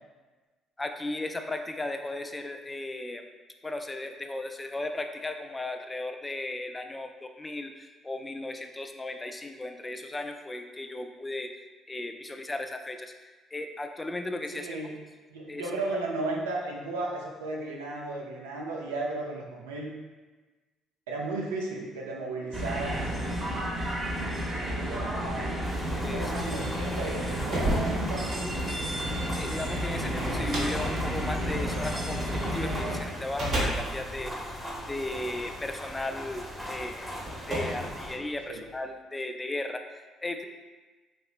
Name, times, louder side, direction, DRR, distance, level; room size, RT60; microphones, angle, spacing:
voice 1, 0.8-3.3 3.6-11.5 11.9-13.1 13.5-14.7 15.5-15.6 26.0-26.5 29.3-34.6 34.9-37.1 37.5-40.5, left 2 dB, 20° left, 6 dB, 0.3 m, -36 dB
voice 2, 14.5-15.0 15.3-20.0 21.1-24.0 24.6-28.9 38.5-38.6, right 2 dB, 90° right, -2 dB, 0.4 m, -35 dB
sound 1, 22.5-33.0, equal, 35° right, 0.8 m, -31 dB
sound 2, 25.6-38.1, equal, ahead, 0.7 m, -40 dB
sound 3, 27.0-32.4 33.0-35.5 36.3-36.4 37.1-38.8, right 1 dB, 60° right, 1.1 m, -34 dB
3.1 x 2.8 x 2.4 m, 1.3 s
hypercardioid pair, 55°, 0 cm